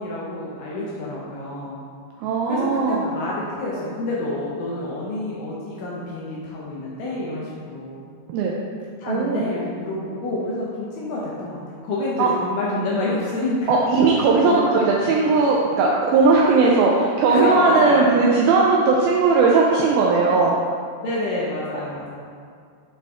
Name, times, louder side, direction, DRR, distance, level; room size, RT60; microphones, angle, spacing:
voice 1, 0.0-1.8 2.5-8.0 9.0-13.8 14.4-15.2 17.3-18.2 21.0-22.2, left 2 dB, 85° left, -5 dB, 1.9 m, -28 dB
voice 2, 2.2-3.0 8.3-8.6 9.1-9.4 12.2-12.3 13.7-20.5, right 4 dB, 90° right, -2 dB, 2.1 m, -18 dB
7.9 x 4.2 x 3.5 m, 2.2 s
omnidirectional pair, 4.8 m